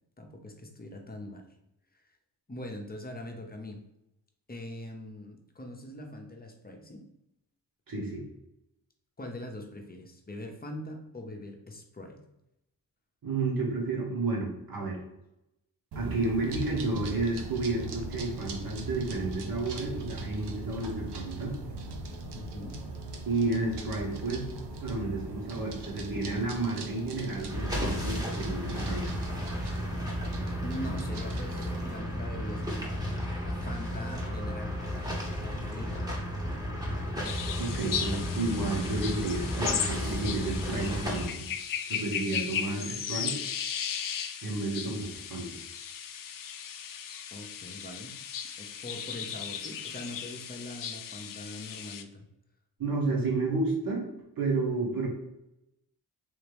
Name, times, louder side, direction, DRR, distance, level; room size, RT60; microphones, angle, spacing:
voice 1, 0.2-1.4 1.9-2.0 2.5-3.8 4.5-7.1 9.2-12.2 22.3-22.8 30.6-36.1 47.3-48.1 48.6-52.2, left 1 dB, 20° left, 3 dB, 0.8 m, -42 dB
voice 2, 7.9-8.2 13.2-15.0 15.9-21.5 23.3-24.5 24.8-29.2 37.6-41.5 41.9-43.4 44.4-45.5 52.8-54.1 54.4-55.1, right 3 dB, 55° right, -2 dB, 1.4 m, -31 dB
sound 1, 15.9-32.0, right 2 dB, 70° right, 0.7 m, -40 dB
sound 2, 27.5-41.3, equal, 10° right, 1.1 m, -33 dB
sound 3, 37.2-52.0, left 8 dB, 50° left, 0.4 m, -36 dB
3.5 x 2.8 x 3.3 m, 0.87 s
cardioid pair, 65°, 42 cm